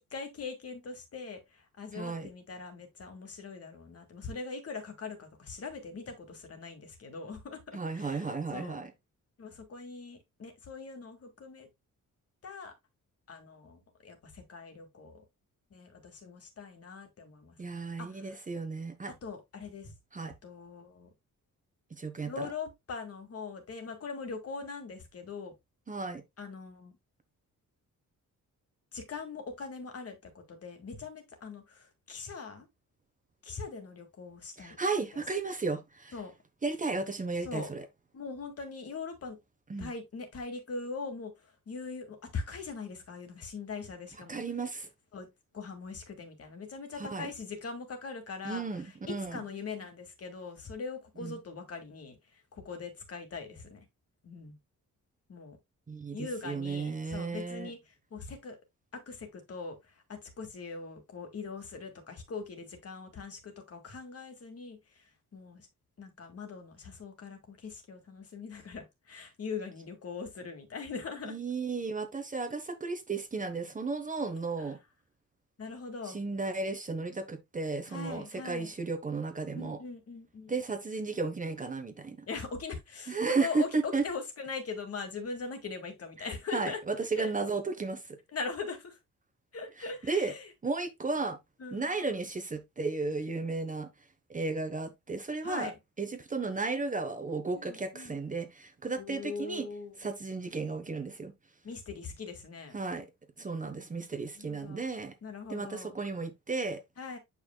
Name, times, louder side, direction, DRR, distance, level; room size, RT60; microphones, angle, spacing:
voice 1, 0.0-8.8 9.4-11.7 12.4-12.7 13.3-15.2 15.7-17.6 18.0-18.4 19.2-19.9 20.2-21.1 22.3-25.5 26.4-26.9 28.9-32.7 33.4-34.8 35.1-35.2 36.1-36.3 37.4-37.7 38.1-39.4 39.8-41.3 41.7-44.4 45.1-45.3 45.5-48.6 49.1-53.9 54.2-54.6 55.3-55.6 56.1-58.6 58.9-65.0 65.3-65.7 66.0-71.4 75.6-76.2 77.9-78.7 79.5-80.5 82.3-86.8 87.2-87.5 88.3-89.0 89.5-90.5 91.6-91.9 95.4-95.8 97.5-98.2 99.0-100.0 101.6-102.8 104.4-104.8 105.2-106.0 107.0-107.2, left 4 dB, 45° left, 2.1 m, -41 dB
voice 2, 1.9-2.3 7.7-8.9 17.6-19.1 20.1-20.3 21.9-22.5 25.9-26.2 34.6-36.1 36.6-37.9 39.7-39.9 44.3-44.9 47.0-47.3 48.4-49.4 51.2-51.4 55.9-57.7 71.2-74.8 76.1-79.8 80.5-82.2 83.1-84.0 86.2-88.2 90.0-90.3 90.6-91.4 91.7-93.9 94.3-95.7 96.0-99.7 100.0-101.3 102.7-103.1 103.4-105.1 105.5-106.8, right 3 dB, 25° right, 1.0 m, -34 dB
8.9 x 5.7 x 2.2 m
wide cardioid pair, 160°, 33 cm